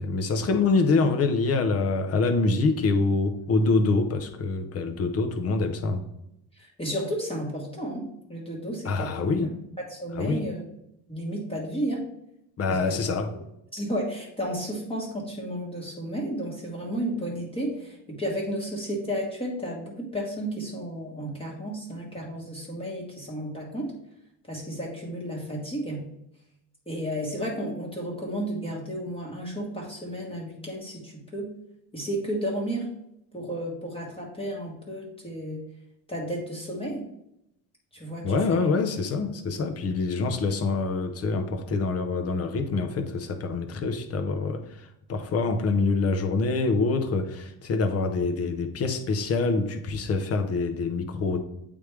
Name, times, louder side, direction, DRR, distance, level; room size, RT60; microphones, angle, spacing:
voice 1, 0.0-6.0 8.8-9.5 10.2-10.4 12.6-13.3 38.2-51.4, left 3 dB, 35° left, 6 dB, 0.8 m, -25 dB
voice 2, 6.5-9.2 9.8-10.6 11.1-12.1 12.7-13.0 13.3-13.4 13.7-23.9 24.5-26.1 26.9-31.5 31.9-32.9 33.3-35.6 36.1-37.1 37.9-38.7, equal, 15° left, -3 dB, 1.3 m, -32 dB
8.5 x 3.4 x 3.3 m, 0.82 s
cardioid pair, 120°, 43 cm